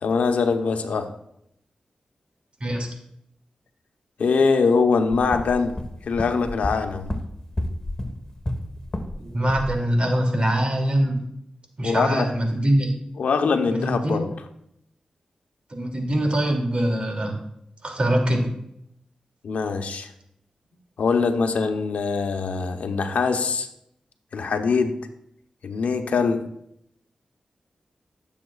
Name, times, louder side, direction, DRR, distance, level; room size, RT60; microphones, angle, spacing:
voice 1, 0.0-1.1 4.2-5.8 6.1-7.1 11.8-12.3 13.2-14.3 19.4-20.1 21.0-23.7 24.3-25.0 25.6-26.5, left 4 dB, 85° left, 6 dB, 0.9 m, -23 dB
sound 1, 5.1-9.2 9.5-9.8, left 1 dB, 25° left, 1.4 m, -31 dB
voice 2, 9.2-11.2 11.8-12.9 13.7-14.2 15.7-17.4 17.8-18.5, right 1 dB, 50° right, 2 dB, 2.6 m, -23 dB
15.5 x 7.3 x 2.4 m, 0.75 s
cardioid pair, 50°, 2 cm